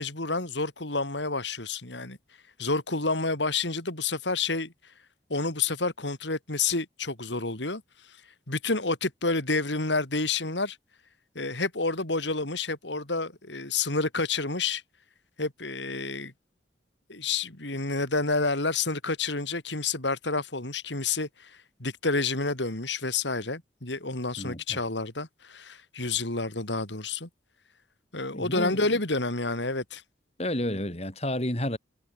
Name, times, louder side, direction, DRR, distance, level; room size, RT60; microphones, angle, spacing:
voice 1, 0.0-2.2 2.6-4.7 5.3-7.8 8.5-10.8 11.3-14.8 15.4-16.3 17.1-21.5 21.8-27.3 28.1-30.0, left 3 dB, 80° left, 4.2 m, -29 dB
voice 2, 24.4-24.8 28.3-28.9 30.4-31.8, left 1 dB, 35° left, 5.3 m, -31 dB
head